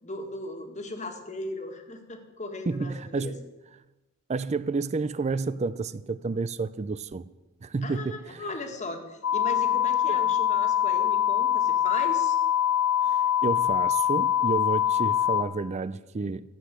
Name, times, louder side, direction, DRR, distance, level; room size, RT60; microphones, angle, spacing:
voice 1, 0.0-3.4 7.8-12.4, left 2 dB, 35° left, 1.7 m, -37 dB
voice 2, 2.7-3.4 4.3-7.2 7.6-8.4 10.1-10.2 13.1-16.4, right 4 dB, 30° right, 0.4 m, -30 dB
sound 1, 9.2-15.4, left 10 dB, 60° left, 0.8 m, -24 dB
13.0 x 8.1 x 7.6 m
head